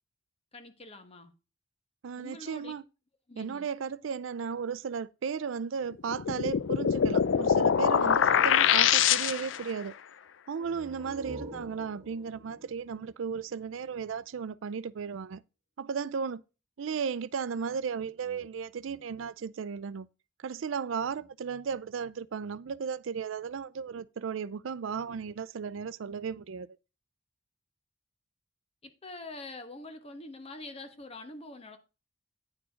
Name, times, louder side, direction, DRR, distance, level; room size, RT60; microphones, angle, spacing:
voice 1, 0.5-1.3 2.2-2.7 3.3-3.7 28.8-31.8, left 2 dB, 30° left, 1.2 m, -45 dB
voice 2, 2.0-2.8 3.4-9.9 10.5-15.4 15.8-16.4 16.8-20.1 20.4-26.7, right 6 dB, 85° right, 0.4 m, -35 dB
sound 1, 6.1-9.7, left 8 dB, 70° left, 0.4 m, -24 dB
sound 2, 10.5-14.1, right 1 dB, 30° right, 1.9 m, -47 dB
9.6 x 4.7 x 5.0 m
head